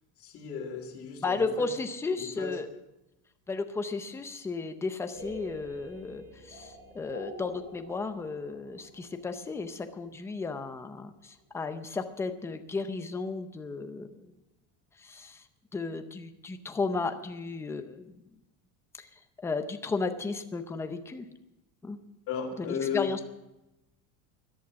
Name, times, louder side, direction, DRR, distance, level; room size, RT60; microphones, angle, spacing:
voice 1, 0.2-1.7 2.1-2.6 22.3-23.1, left 7 dB, 40° left, 0 dB, 2.4 m, -35 dB
voice 2, 1.2-2.7 3.5-14.3 15.0-15.5 15.7-18.3 19.0-21.3 21.8-22.0 22.6-22.7 22.9-23.2, left 4 dB, 5° left, 8 dB, 0.6 m, -34 dB
sound 1, 5.1-10.9, equal, 30° right, 5.1 m, -47 dB
13.5 x 11.5 x 5.9 m, 0.93 s
cardioid pair, 175°, 36 cm